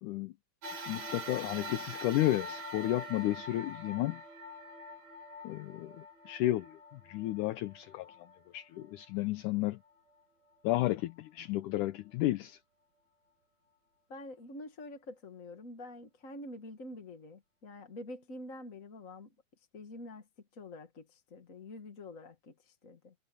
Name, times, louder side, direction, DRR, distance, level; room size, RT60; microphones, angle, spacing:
voice 1, 0.0-0.3 0.9-4.2 5.4-8.1 8.5-9.8 10.6-12.6, left 16 dB, 75° left, 2.1 m, -32 dB
sound 1, 0.6-9.2 9.8-9.9 11.1-11.2, equal, 50° right, 4.8 m, -44 dB
voice 2, 14.1-23.1, left 2 dB, 35° left, 1.3 m, -47 dB
omnidirectional pair, 4.0 m